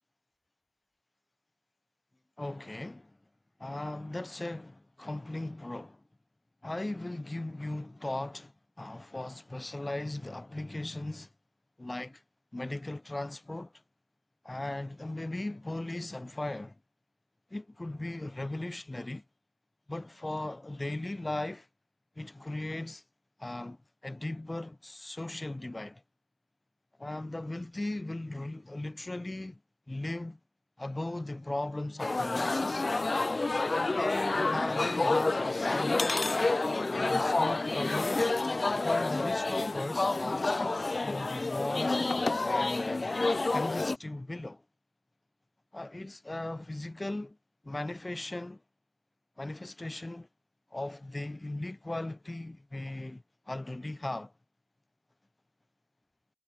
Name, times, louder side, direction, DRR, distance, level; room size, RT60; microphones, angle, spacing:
voice 1, 2.4-3.2 3.6-6.0 6.6-11.3 11.8-12.2 12.5-13.7 14.4-16.8 17.5-19.2 19.9-21.7 22.2-23.0 23.4-26.0 27.0-29.6 29.9-30.4 30.8-32.9 33.7-36.2 36.9-38.4 38.7-40.7 41.0-42.0 42.4-43.2 43.5-44.6 45.7-47.4 47.6-48.6 49.4-50.3 50.7-54.3, left 2 dB, 50° left, 1.8 m, -37 dB
sound 1, 32.0-44.0, left 3 dB, 90° left, 0.3 m, -29 dB
wide cardioid pair, 40°, 0 cm